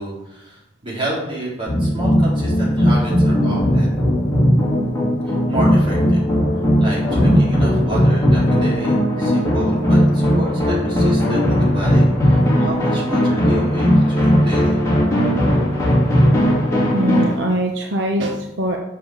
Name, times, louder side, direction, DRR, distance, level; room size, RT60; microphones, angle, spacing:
voice 1, 0.0-3.9 5.2-6.2 6.8-14.8, right 1 dB, 30° right, -6 dB, 4.0 m, -30 dB
sound 1, 1.7-17.3, equal, 15° left, 2.8 m, -17 dB
voice 2, 16.9-18.8, right 1 dB, 70° right, 1 dB, 1.0 m, -22 dB
7.6 x 6.7 x 6.6 m, 0.86 s
head